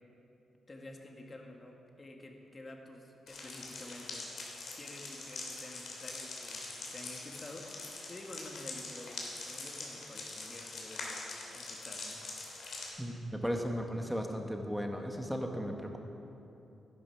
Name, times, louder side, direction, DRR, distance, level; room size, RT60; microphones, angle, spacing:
voice 1, 0.7-4.3 4.7-12.2, left 2 dB, 25° left, 2 dB, 1.4 m, -50 dB
sound 1, 3.3-12.9, left 3 dB, 60° left, 3.1 m, -43 dB
voice 2, 13.0-16.0, equal, ahead, 2 dB, 1.1 m, -36 dB
14.0 x 12.5 x 5.7 m, 2.9 s
wide cardioid pair, 175°, 0 cm